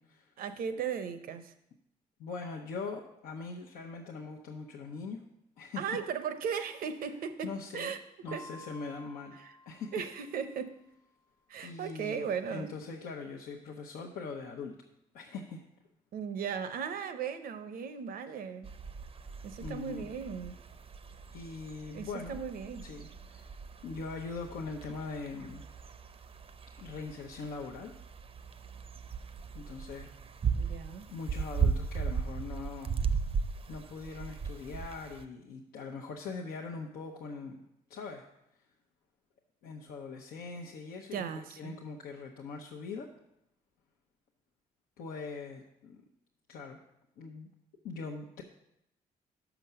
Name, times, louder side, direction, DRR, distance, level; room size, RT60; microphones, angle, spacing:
voice 1, 0.4-1.5 5.8-8.0 8.3-8.5 9.4-9.5 9.9-10.8 11.5-12.7 16.1-18.7 19.4-20.5 21.9-22.9 30.5-31.1 41.1-41.7, right 7 dB, 75° right, 10 dB, 0.7 m, -37 dB
voice 2, 2.2-5.2 5.6-5.8 7.4-7.9 8.2-9.4 9.7-9.9 11.6-14.7 15.1-15.6 19.6-20.1 21.3-22.4 22.8-23.5 23.8-25.6 26.8-27.9 29.5-30.1 30.6-30.8 31.1-32.9 33.7-37.6 37.9-38.3 39.6-43.1 45.0-46.0 46.5-46.8 47.2-47.5 47.8-48.4, left 4 dB, 85° left, -2 dB, 0.8 m, -41 dB
sound 1, 8.3-10.8, left 2 dB, 10° left, 0.3 m, -52 dB
sound 2, 18.6-35.2, right 6 dB, 40° right, 0.5 m, -37 dB
6.0 x 5.9 x 6.7 m, 0.80 s
cardioid pair, 75°, 15 cm